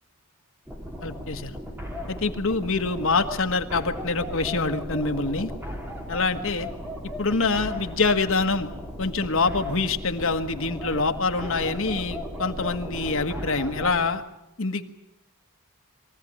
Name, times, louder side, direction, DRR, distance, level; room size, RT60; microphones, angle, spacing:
sound 1, 0.7-14.0, equal, 10° right, 3.3 m, -36 dB
voice 1, 1.0-1.6 2.1-5.5 6.1-6.7 7.2-8.7 9.0-14.2 14.6-14.8, left 3 dB, 65° left, 7 dB, 1.5 m, -25 dB
23.0 x 16.0 x 9.9 m, 0.90 s
head